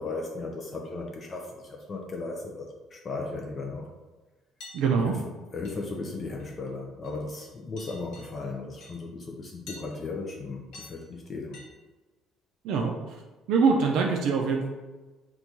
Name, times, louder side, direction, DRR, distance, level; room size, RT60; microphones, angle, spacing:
voice 1, 0.0-3.9 5.0-5.1 5.5-11.6, left 3 dB, 25° left, 1 dB, 0.3 m, -36 dB
sound 1, 4.6-4.8 5.6-6.0 6.4-6.7 7.0-7.5 7.8-8.3 8.8-8.9 9.7-9.9 10.7-11.0 11.5-11.7, left 3 dB, 75° left, 0.9 m, -46 dB
voice 2, 4.7-5.1 12.6-13.2 13.5-14.7, right 5 dB, 65° right, 1 dB, 0.3 m, -24 dB
4.4 x 2.3 x 2.6 m, 1.2 s
cardioid pair, 155°, 0 cm